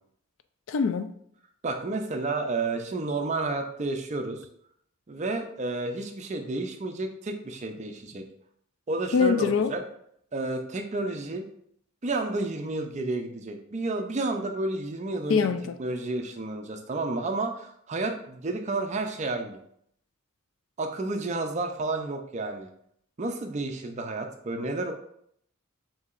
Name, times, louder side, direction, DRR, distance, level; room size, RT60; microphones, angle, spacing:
voice 1, 0.7-1.1 9.1-9.7 15.3-15.8, left 5 dB, 60° left, 10 dB, 0.3 m, -23 dB
voice 2, 1.6-4.4 5.1-8.2 8.9-9.8 10.3-11.5 12.0-15.5 15.8-19.6 20.8-22.7 23.2-24.9, right 2 dB, 35° right, 5 dB, 0.4 m, -31 dB
6.8 x 2.8 x 2.4 m, 0.69 s
head